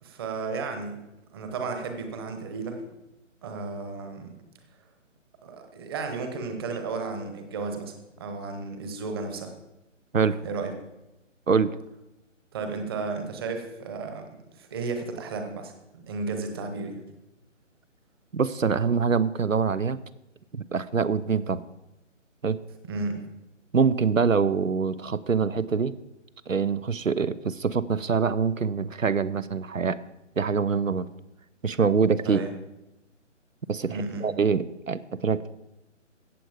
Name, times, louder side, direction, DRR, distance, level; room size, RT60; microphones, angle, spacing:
voice 1, 0.0-1.0 1.3-2.8 3.4-4.3 5.4-9.5 10.4-10.7 12.5-17.0 22.9-23.2 32.2-32.5 33.8-34.3, right 4 dB, 20° right, 6 dB, 1.1 m, -33 dB
voice 2, 18.3-20.0 20.5-21.6 22.4-22.6 23.7-25.9 26.5-30.0 30.4-31.1 31.6-32.4 33.7-35.5, right 5 dB, 90° right, 17 dB, 0.7 m, -24 dB
14.5 x 8.1 x 5.1 m, 0.94 s
figure-of-eight pair, 145°, 38 cm